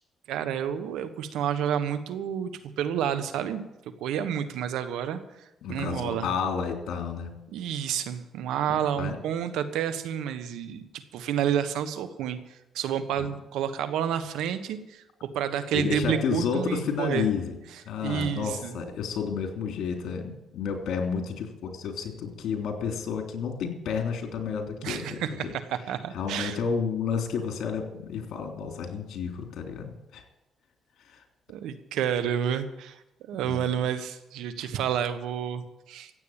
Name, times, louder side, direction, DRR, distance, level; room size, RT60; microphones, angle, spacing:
voice 1, 0.3-2.5 2.8-3.6 4.0-6.3 7.5-17.3 18.0-18.8 24.8-25.3 25.9-26.6 31.5-33.0 33.3-36.1, right 9 dB, 90° right, 11 dB, 1.3 m, -30 dB
voice 2, 5.6-7.3 8.7-9.2 13.2-13.3 15.7-25.5 26.1-30.2 31.0-31.2 33.4-33.6, left 6 dB, 75° left, 3 dB, 3.2 m, -31 dB
15.0 x 8.6 x 8.8 m, 0.92 s
cardioid pair, 90°, 0 cm